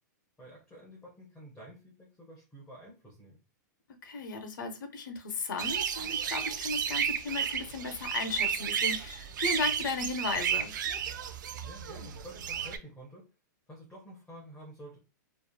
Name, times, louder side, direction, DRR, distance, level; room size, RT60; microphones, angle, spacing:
voice 1, 0.4-3.4 11.6-13.3 13.7-15.0, right 1 dB, 10° left, 0.6 m, -50 dB
voice 2, 4.0-10.7, left 3 dB, 80° left, 0.6 m, -35 dB
sound 1, 5.6-12.8, right 8 dB, 85° right, 0.4 m, -33 dB
3.0 x 2.4 x 2.2 m
supercardioid pair, 160°, 10 cm